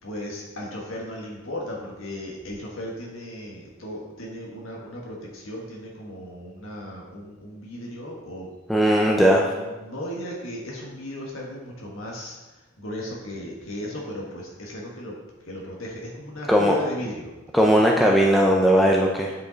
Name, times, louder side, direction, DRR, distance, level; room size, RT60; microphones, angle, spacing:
voice 1, 0.0-8.5 8.7-8.9 9.3-12.4 12.8-15.2 15.5-17.3, equal, 90° left, -2 dB, 1.5 m, -36 dB
voice 2, 8.7-9.5 16.5-16.8 17.5-19.4, equal, ahead, -2 dB, 0.5 m, -18 dB
8.9 x 5.2 x 4.0 m, 1.1 s
head